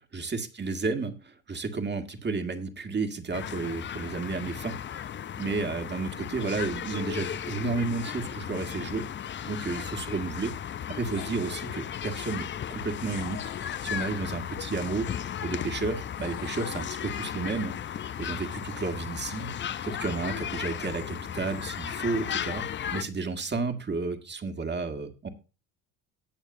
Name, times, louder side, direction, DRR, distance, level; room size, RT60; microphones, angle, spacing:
voice 1, 0.1-4.8 5.4-9.1 9.4-10.5 10.9-19.5 19.8-22.6 22.9-25.3, right 4 dB, 30° right, 6 dB, 2.0 m, -32 dB
sound 1, 3.3-23.0, left 9 dB, 30° left, 0.5 m, -35 dB
sound 2, 11.1-11.8 13.0-14.7 16.2-17.6, left 11 dB, 80° left, 1.8 m, -46 dB
18.5 x 6.5 x 2.7 m, 0.32 s
supercardioid pair, 75°, 38 cm